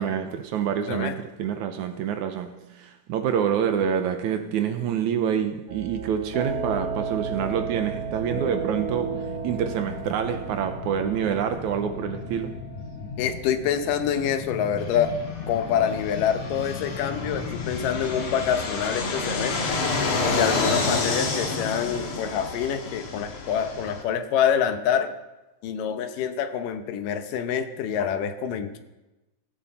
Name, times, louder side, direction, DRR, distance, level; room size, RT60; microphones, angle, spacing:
voice 1, 0.0-12.6, right 8 dB, 75° right, 2.1 m, -27 dB
sound 1, 5.7-23.7, right 5 dB, 30° right, 2.0 m, -36 dB
sound 2, 7.2-20.3 20.6-20.7, left 7 dB, 70° left, 2.0 m, -39 dB
voice 2, 13.2-15.1 15.5-19.8 20.4-25.1 25.6-28.8, left 8 dB, 85° left, 2.6 m, -26 dB
Fixed-wing aircraft airplane, 14.8-24.0, left 3 dB, 50° left, 2.2 m, -29 dB
15.5 x 15.0 x 4.2 m
omnidirectional pair, 3.8 m